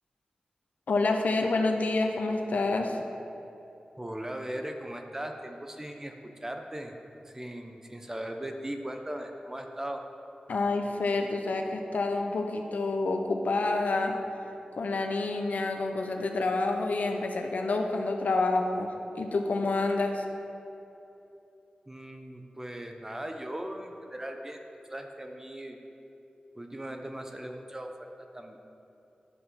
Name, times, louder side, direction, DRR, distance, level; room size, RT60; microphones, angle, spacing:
voice 1, 0.9-3.0 10.5-14.2 14.8-20.2, left 3 dB, 80° left, 4 dB, 0.9 m, -28 dB
voice 2, 4.0-6.9 7.2-10.0 21.9-24.6 24.9-25.8 26.5-28.6, right 1 dB, 20° right, 4 dB, 0.9 m, -38 dB
11.0 x 5.9 x 6.3 m, 2.9 s
wide cardioid pair, 85°, 3 cm